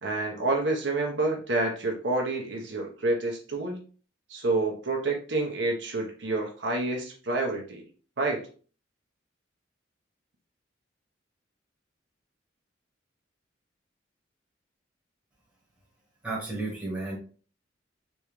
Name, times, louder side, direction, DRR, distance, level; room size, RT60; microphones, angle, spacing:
voice 1, 0.0-3.8 4.3-7.8 8.2-8.5, right 2 dB, 75° right, 0 dB, 0.9 m, -28 dB
voice 2, 16.2-17.2, right 2 dB, 5° right, -4 dB, 1.5 m, -32 dB
3.5 x 3.1 x 3.1 m, 0.39 s
head